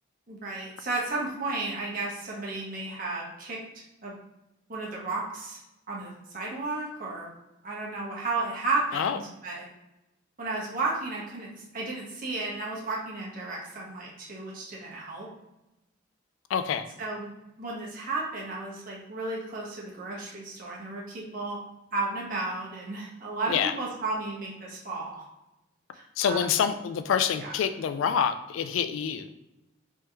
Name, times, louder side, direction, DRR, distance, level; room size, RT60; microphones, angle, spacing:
voice 1, 0.3-3.6 4.0-4.1 4.7-5.6 5.9-7.3 7.6-9.7 10.4-15.3 17.0-17.3 17.6-21.6 21.9-25.3 25.9-26.5 27.4-27.5, right 3 dB, 45° right, -4 dB, 1.1 m, -33 dB
voice 2, 16.5-16.9 23.5-23.7 26.2-29.3, left 7 dB, 80° left, 10 dB, 0.3 m, -26 dB
3.6 x 3.2 x 2.8 m, 0.95 s
head